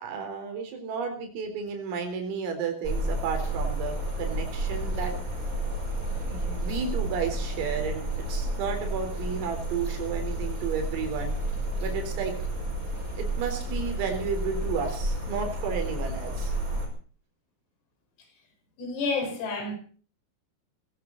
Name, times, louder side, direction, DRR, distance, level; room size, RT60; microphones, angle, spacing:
voice 1, 0.0-5.1 6.2-11.4 11.8-12.4 13.2-16.5, right 6 dB, 80° right, 5 dB, 6.5 m, -32 dB
sound 1, 2.8-16.9, right 1 dB, 15° right, 5.6 m, -31 dB
voice 2, 18.8-19.7, left 3 dB, 85° left, 6 dB, 7.6 m, -29 dB
21.5 x 17.0 x 4.0 m, 0.42 s
omnidirectional pair, 5.9 m